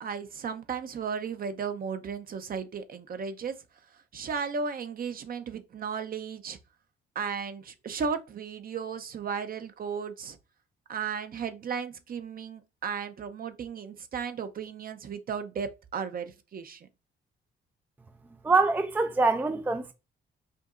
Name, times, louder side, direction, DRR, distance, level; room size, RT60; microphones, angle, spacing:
voice 1, 0.0-3.6 4.1-6.6 7.1-10.4 10.9-16.9, right 6 dB, 45° right, 0.7 m, -35 dB
voice 2, 18.4-19.9, right 3 dB, 10° right, 0.4 m, -24 dB
5.1 x 2.8 x 2.5 m
cardioid pair, 90°, 20 cm